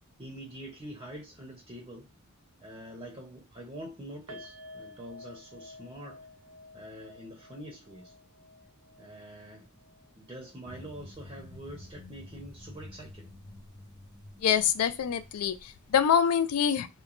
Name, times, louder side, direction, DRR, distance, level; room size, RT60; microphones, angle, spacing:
voice 1, 0.2-2.1 2.6-6.2 6.7-8.1 9.0-9.7 10.2-13.3, right 1 dB, 25° right, 0.5 m, -45 dB
sound 1, 4.3-11.5 11.7-11.9 12.3-12.4, left 1 dB, 80° right, 0.7 m, -52 dB
sound 2, 10.6-16.2, left 1 dB, 20° left, 0.7 m, -50 dB
voice 2, 14.4-16.9, left 8 dB, 80° left, 0.4 m, -25 dB
2.9 x 2.2 x 2.4 m
head